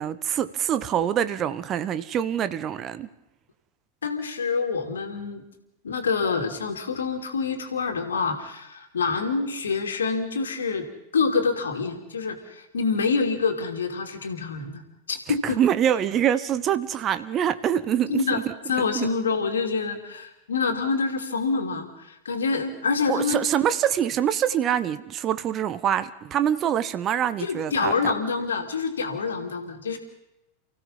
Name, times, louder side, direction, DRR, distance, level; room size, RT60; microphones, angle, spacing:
voice 1, 0.0-3.1 15.4-18.5 18.9-19.1 23.1-28.1, right 9 dB, 30° right, 14 dB, 1.1 m, -25 dB
voice 2, 4.0-5.4 5.8-10.9 11.1-14.8 15.1-15.6 18.1-18.4 18.7-23.4 27.4-30.0, left 4 dB, 70° left, 5 dB, 2.9 m, -26 dB
29.5 x 16.0 x 5.6 m, 0.89 s
figure-of-eight pair, 90°, 0 cm